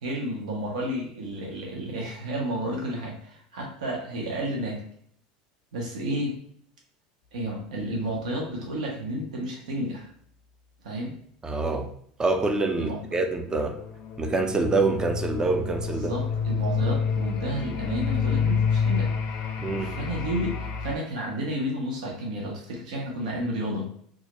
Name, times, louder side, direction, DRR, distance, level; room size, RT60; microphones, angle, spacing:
voice 1, 0.0-4.8 5.7-6.4 7.3-10.1 10.8-11.1 12.8-13.2 15.9-19.1 19.8-23.9, right 1 dB, 85° right, -1 dB, 0.6 m, -31 dB
voice 2, 11.4-11.9 12.2-13.8 14.2-16.1 19.6-19.9, right 3 dB, 20° right, 5 dB, 0.4 m, -26 dB
sound 1, 13.4-21.0, left 6 dB, 50° left, 0.4 m, -28 dB
2.3 x 2.0 x 2.9 m, 0.63 s
supercardioid pair, 100°, 4 cm